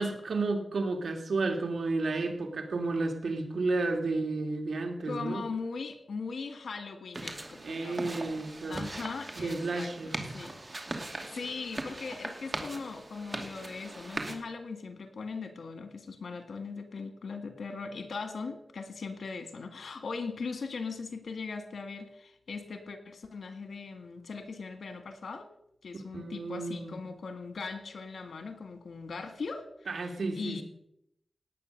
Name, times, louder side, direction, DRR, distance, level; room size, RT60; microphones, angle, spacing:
voice 1, 0.0-5.4 7.6-8.8 9.4-10.1 26.1-27.0 29.9-30.6, right 3 dB, 90° right, 4 dB, 2.4 m, -32 dB
voice 2, 5.0-8.3 8.7-10.6 11.2-25.5 25.8-30.6, left 4 dB, 90° left, 8 dB, 1.9 m, -40 dB
sound 1, 7.1-14.3, right 2 dB, 35° right, 2.7 m, -40 dB
18.5 x 9.0 x 6.7 m, 0.77 s
wide cardioid pair, 70°, 0 cm